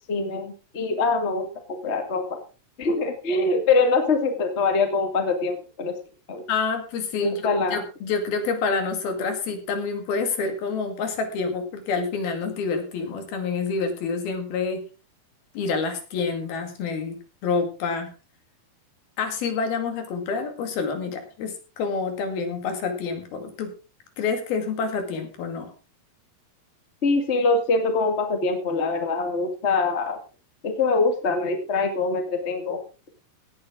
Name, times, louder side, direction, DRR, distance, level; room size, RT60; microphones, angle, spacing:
voice 1, 0.1-1.5 1.8-2.4 2.8-5.9 6.3-6.4 7.2-7.8 27.0-30.2 30.6-32.8, left 3 dB, 25° left, 5 dB, 1.5 m, -23 dB
voice 2, 6.5-7.4 7.7-14.8 15.6-18.1 19.2-23.7 24.2-25.7, left 4 dB, 80° left, 6 dB, 4.2 m, -28 dB
17.0 x 9.6 x 3.8 m, 0.34 s
omnidirectional pair, 4.3 m